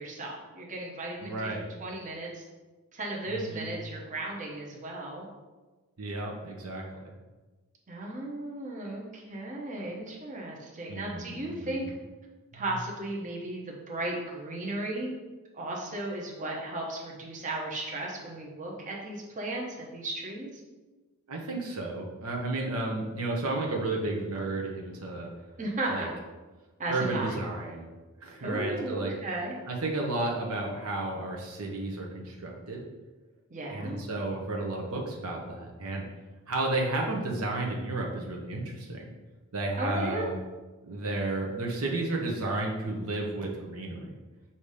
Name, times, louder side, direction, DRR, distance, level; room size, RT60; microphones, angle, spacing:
voice 1, 0.0-1.5 1.8-2.4 2.9-5.3 7.9-11.9 12.5-15.1 15.5-20.6 25.6-26.1 26.8-27.4 28.4-29.5 33.5-34.0 39.8-40.3, right 2 dB, 35° right, -2 dB, 1.0 m, -35 dB
voice 2, 1.2-1.7 3.3-3.7 6.0-7.1 10.9-11.8 12.5-12.6 21.3-25.3 25.9-26.1 26.9-27.9 28.2-29.1 29.7-32.8 33.7-36.0 36.5-39.0 39.5-40.4 40.8-44.1, right 2 dB, 70° right, -1 dB, 0.9 m, -32 dB
7.0 x 2.8 x 4.9 m, 1.2 s
head